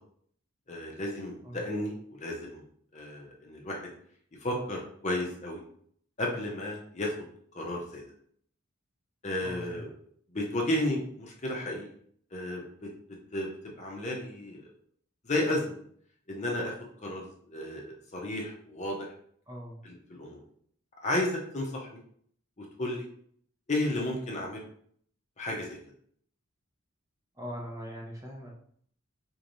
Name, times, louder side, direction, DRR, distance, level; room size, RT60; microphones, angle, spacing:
voice 1, 0.7-2.6 2.9-3.8 4.4-5.6 6.2-7.1 7.5-8.0 9.2-9.9 10.3-11.8 12.3-12.9 13.3-13.5 13.8-14.7 15.2-15.7 16.3-16.7 17.0-19.1 19.8-20.4 21.0-22.0 22.6-23.1 23.7-24.7 25.4-25.8, left 1 dB, 35° left, -1 dB, 0.8 m, -33 dB
voice 2, 9.4-9.8 19.5-19.8 27.3-28.5, equal, 15° right, -2 dB, 0.8 m, -41 dB
4.4 x 3.2 x 2.6 m, 0.62 s
head